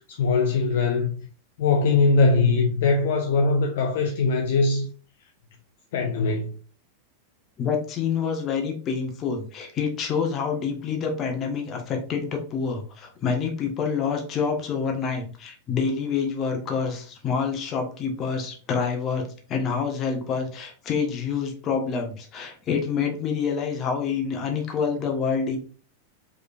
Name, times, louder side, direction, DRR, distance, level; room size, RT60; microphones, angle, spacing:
voice 1, 0.1-1.2 1.6-4.9 5.9-6.5, left 3 dB, 55° left, 0.8 m, -21 dB
voice 2, 7.6-19.2 19.5-25.6, left 6 dB, 30° left, 1.3 m, -27 dB
5.0 x 3.9 x 2.5 m
figure-of-eight pair, 90°, 0 cm